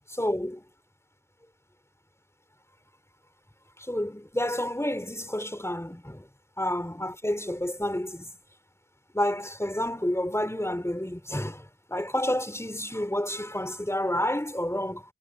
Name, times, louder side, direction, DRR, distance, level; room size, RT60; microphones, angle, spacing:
voice 1, 0.1-0.6 3.8-6.3 6.6-8.3 9.1-15.0, left 1 dB, 10° left, 3.8 m, -30 dB
cardioid pair, 50°, 32 cm